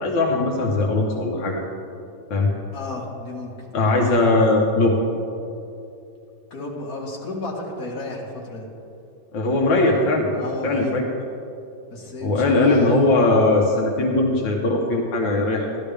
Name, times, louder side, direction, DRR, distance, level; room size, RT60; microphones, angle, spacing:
voice 1, 0.0-1.6 2.3-2.5 3.7-5.0 9.3-11.1 12.2-15.7, left 2 dB, 85° left, -1 dB, 1.8 m, -20 dB
voice 2, 2.7-3.5 6.5-8.7 10.4-11.0 11.9-13.0, left 2 dB, 50° left, -3 dB, 2.1 m, -32 dB
13.0 x 12.0 x 3.4 m, 2.7 s
omnidirectional pair, 2.0 m